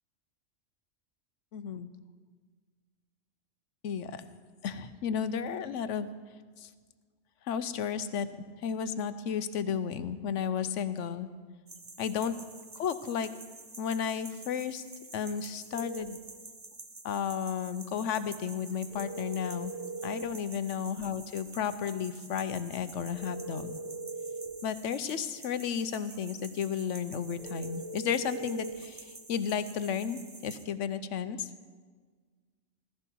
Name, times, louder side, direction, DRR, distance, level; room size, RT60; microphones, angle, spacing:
voice 1, 1.5-1.9 3.8-4.2 4.6-6.1 6.6-6.7 7.4-8.3 8.6-11.3 12.0-12.4 12.7-13.3 13.8-14.8 15.1-16.2 17.0-19.7 20.0-23.7 24.6-31.5, left 7 dB, 75° left, 12 dB, 1.0 m, -33 dB
sound 1, 11.7-30.6, right 3 dB, 20° right, 0.6 m, -49 dB
sound 2, 15.7-16.1 18.9-20.3 23.1-24.5 27.4-28.8, right 3 dB, 60° right, 5.9 m, -40 dB
15.0 x 14.5 x 4.6 m, 1.5 s
omnidirectional pair, 1.3 m